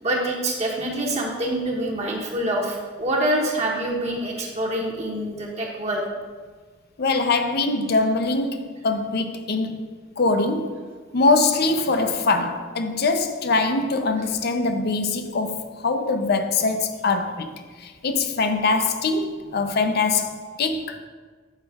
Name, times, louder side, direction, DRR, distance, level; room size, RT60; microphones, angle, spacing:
voice 1, 0.0-6.0, right 1 dB, 35° right, 0.9 m, -26 dB
voice 2, 7.0-9.9 10.2-10.8 11.1-17.5 17.8-21.0, left 3 dB, 60° left, 0.6 m, -23 dB
8.0 x 5.2 x 3.4 m
head